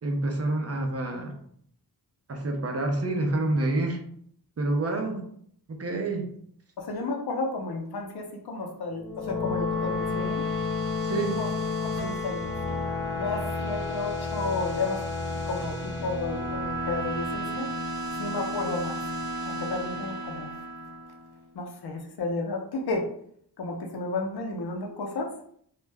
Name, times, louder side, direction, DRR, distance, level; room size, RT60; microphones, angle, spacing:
voice 1, 0.0-1.4 2.3-4.0 4.6-5.2 5.7-6.3 11.0-11.4, right 2 dB, 40° right, 3 dB, 0.6 m, -28 dB
voice 2, 6.8-10.4 11.2-11.5 11.8-12.5 13.2-15.1 15.5-17.7 18.2-19.0 19.4-20.5 21.5-23.1 23.6-25.3, left 3 dB, 75° left, 2 dB, 0.6 m, -32 dB
sound 1, 8.9-21.3, left 2 dB, 45° left, 1.2 m, -31 dB
2.3 x 2.0 x 3.3 m, 0.65 s
wide cardioid pair, 70°, 39 cm